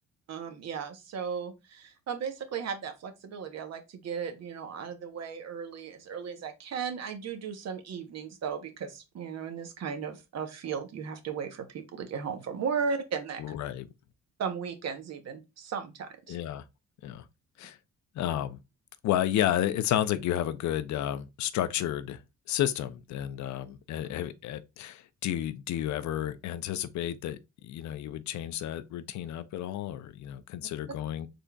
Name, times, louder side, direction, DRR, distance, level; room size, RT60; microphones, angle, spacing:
voice 1, 0.3-13.5 14.4-16.4, right 6 dB, 60° right, 0.9 m, -36 dB
voice 2, 13.4-13.9 16.3-16.6 17.0-17.2 17.6-17.8 18.2-18.6 19.0-22.2 22.5-27.4 27.6-31.3, left 11 dB, 70° left, 0.5 m, -31 dB
3.8 x 3.4 x 2.2 m
cardioid pair, 90°, 30 cm